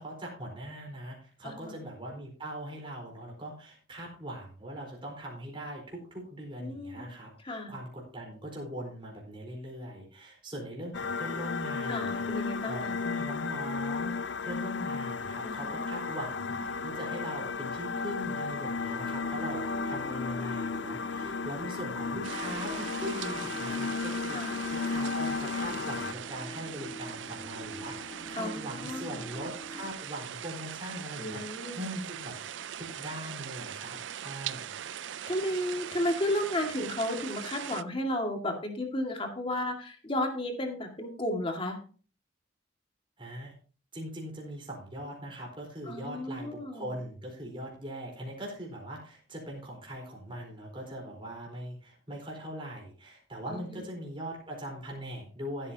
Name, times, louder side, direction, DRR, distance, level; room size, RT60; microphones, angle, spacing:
voice 1, 0.0-24.4 24.7-32.3 32.7-34.7 43.2-43.5 43.9-55.7, right 1 dB, 25° right, -2 dB, 4.4 m, -41 dB
voice 2, 1.4-1.8 6.6-7.1 7.4-7.7 11.9-13.0 15.4-15.8 19.5-20.4 24.3-24.6 28.4-29.3 31.2-31.9 35.3-41.8 45.9-47.0 53.5-53.9, left 1 dB, 30° left, 3 dB, 2.1 m, -34 dB
sound 1, 10.9-26.1, left 4 dB, 65° left, 0.5 m, -34 dB
sound 2, 14.0-29.9, left 1 dB, 5° left, 1.5 m, -45 dB
sound 3, 22.2-37.8, right 9 dB, 75° right, 0.5 m, -41 dB
15.0 x 9.0 x 2.9 m, 0.38 s
head